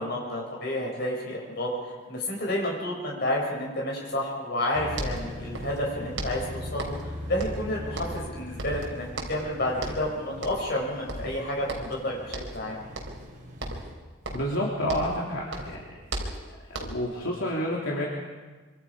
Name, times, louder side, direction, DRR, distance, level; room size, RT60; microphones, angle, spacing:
voice 1, 0.0-1.7 2.1-12.8, left 1 dB, 50° left, -2 dB, 6.6 m, -30 dB
sound 1, 4.6-4.7 4.9-5.9 6.2-7.1 7.4-8.3 8.6-9.5 9.8-10.1 10.4-10.8 11.1-12.0 12.3-12.6 12.9-13.3 13.6-15.2 15.5-17.1, right 2 dB, 70° right, 3.9 m, -36 dB
sound 2, 4.7-13.9, left 1 dB, 40° right, 5.4 m, -40 dB
voice 2, 14.3-15.9 16.6-18.1, equal, 75° left, -4 dB, 3.2 m, -29 dB
26.0 x 24.5 x 5.0 m, 1.3 s
head